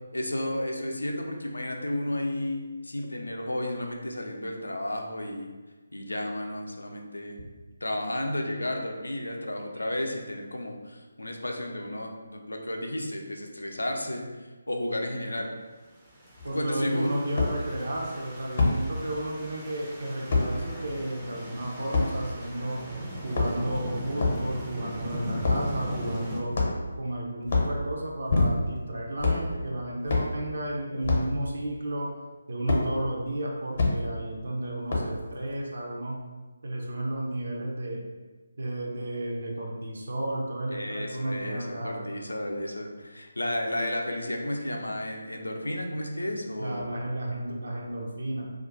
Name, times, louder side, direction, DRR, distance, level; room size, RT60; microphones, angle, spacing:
voice 1, 0.1-5.5 5.9-7.4 7.8-15.5 16.5-17.1 40.7-46.8, left 1 dB, 75° left, 2 dB, 0.4 m, -32 dB
sound 1, 16.1-26.4, equal, 10° right, 0.4 m, -39 dB
sound 2, 16.4-16.5 17.4-17.5 18.6-18.8 20.3-20.5 21.9-22.1 23.2-23.7 24.2-24.4 25.4-25.7 26.5-26.9 27.4-27.7 28.3-28.8 29.2-29.4 30.1-30.3 31.0-31.3 32.7-32.8 33.8-33.9 34.9-35.2, left 3 dB, 45° left, 0.7 m, -24 dB
voice 2, 16.4-22.8 23.2-32.1 32.5-36.2 36.6-38.0 38.6-42.0 46.6-48.5, right 1 dB, 60° right, -2 dB, 0.5 m, -33 dB
2.4 x 2.2 x 3.8 m, 1.3 s
figure-of-eight pair, 150°, 0 cm